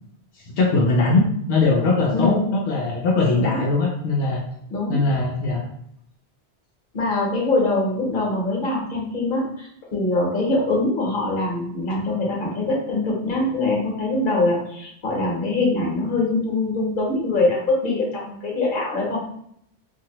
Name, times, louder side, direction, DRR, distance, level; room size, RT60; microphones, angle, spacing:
voice 1, 0.6-4.4 4.9-5.6 11.9-12.0, left 3 dB, 80° left, -2 dB, 0.8 m, -20 dB
voice 2, 6.9-19.2, left 2 dB, 50° left, -3 dB, 1.1 m, -23 dB
2.8 x 2.5 x 2.8 m, 0.69 s
omnidirectional pair, 1.1 m